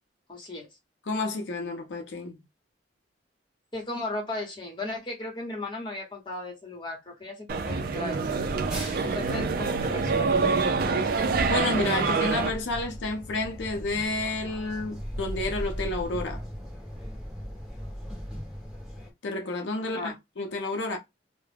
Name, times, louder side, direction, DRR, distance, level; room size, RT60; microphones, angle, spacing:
voice 1, 0.3-0.7 3.7-8.3 9.0-10.5 10.8-11.2 19.9-20.1, left 2 dB, 25° left, 1.0 m, -36 dB
voice 2, 1.1-2.4 11.4-16.4 19.2-21.0, left 2 dB, 85° left, 0.5 m, -30 dB
sound 1, 7.5-12.5, right 4 dB, 55° right, 0.4 m, -26 dB
sound 2, 8.3-19.1, equal, 5° right, 1.0 m, -38 dB
2.3 x 2.0 x 3.3 m
head